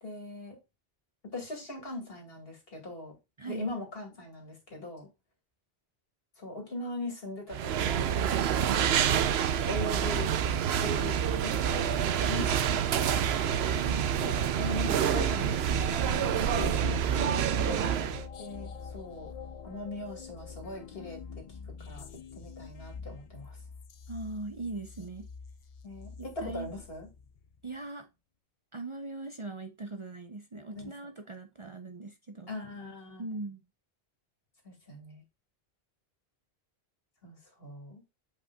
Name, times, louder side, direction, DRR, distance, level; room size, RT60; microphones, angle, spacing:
voice 1, 0.0-0.6 1.3-3.1 3.4-5.1 6.4-8.3 8.6-9.2 9.7-10.3 10.8-13.7 14.2-17.0 18.4-19.3 19.6-21.4 21.8-22.0 22.3-23.6 25.8-27.1 30.8-30.9 32.5-33.3 34.6-35.2 37.2-38.0, left 2 dB, 70° left, 2.4 m, -41 dB
voice 2, 3.4-3.7 13.8-14.1 17.1-17.9 24.1-25.3 26.2-26.7 27.6-28.1 28.7-32.6 33.2-33.6, right 2 dB, 35° right, 0.6 m, -40 dB
sound 1, 7.5-18.2, right 8 dB, 85° right, 0.9 m, -27 dB
sound 2, 16.0-27.6, left 6 dB, 50° left, 0.4 m, -44 dB
8.2 x 5.0 x 2.3 m
omnidirectional pair, 1.0 m